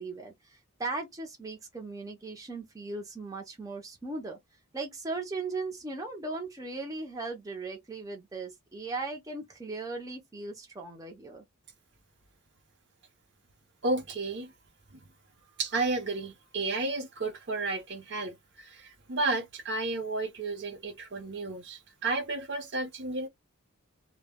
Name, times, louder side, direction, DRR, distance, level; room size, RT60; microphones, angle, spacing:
voice 1, 0.0-4.4 4.7-11.4, right 3 dB, 15° right, 0.5 m, -38 dB
voice 2, 13.8-14.5 14.9-15.0 15.6-23.3, right 3 dB, 55° right, 0.7 m, -32 dB
2.1 x 2.0 x 3.4 m
head